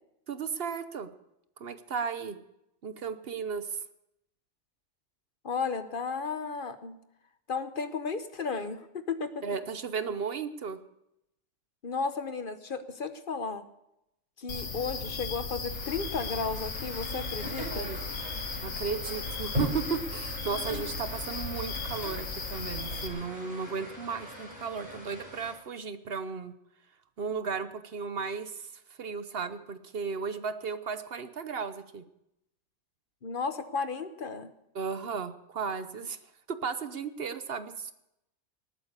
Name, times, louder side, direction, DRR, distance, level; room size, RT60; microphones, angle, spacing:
voice 1, 0.3-1.1 1.6-2.4 2.8-3.8 9.4-10.8 17.7-18.0 18.6-26.5 27.2-32.0 34.7-36.2 36.5-37.9, right 5 dB, 60° right, 11 dB, 1.1 m, -35 dB
voice 2, 5.4-7.0 7.5-9.4 11.8-13.6 14.4-17.9 33.2-34.5, left 5 dB, 50° left, 10 dB, 1.0 m, -34 dB
sound 1, 14.5-23.1, left 4 dB, 85° left, 1.7 m, -36 dB
sound 2, 15.7-25.5, equal, 40° right, 6.9 m, -40 dB
19.0 x 8.9 x 6.6 m, 0.84 s
omnidirectional pair, 1.2 m